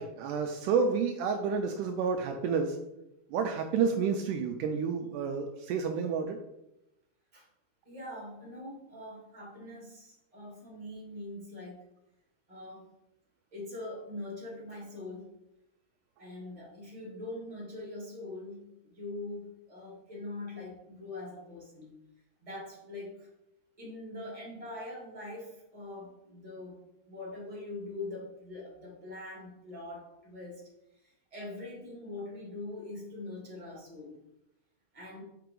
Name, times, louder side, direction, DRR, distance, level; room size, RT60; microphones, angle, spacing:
voice 1, 0.0-2.8 3.3-6.4, right 5 dB, 90° right, 5 dB, 1.8 m, -30 dB
voice 2, 7.9-11.9 12.5-12.9 13.5-15.3 16.2-21.9 22.4-23.3 23.8-26.8 27.1-30.6 31.3-34.1 34.9-35.2, left 2 dB, 10° right, -4 dB, 1.9 m, -43 dB
6.3 x 5.7 x 3.8 m, 0.86 s
omnidirectional pair, 4.2 m